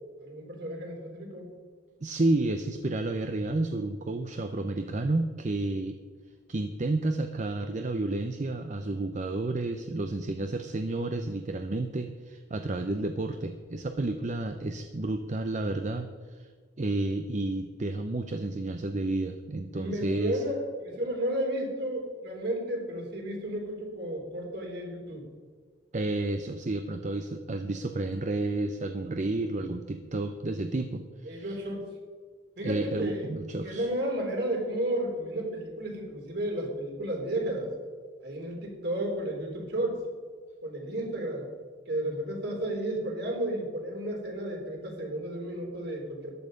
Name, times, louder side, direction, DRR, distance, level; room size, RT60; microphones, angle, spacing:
voice 1, 0.2-1.5 19.7-25.3 31.2-31.9 32.6-33.2 33.6-37.7 38.2-40.0 40.6-41.5 41.9-46.4, right 1 dB, 60° right, 0 dB, 3.6 m, -33 dB
voice 2, 2.0-6.0 6.5-16.5 16.8-20.4 25.9-31.4 32.6-33.9, right 2 dB, 40° right, 7 dB, 0.7 m, -31 dB
14.0 x 11.0 x 5.2 m, 1.5 s
head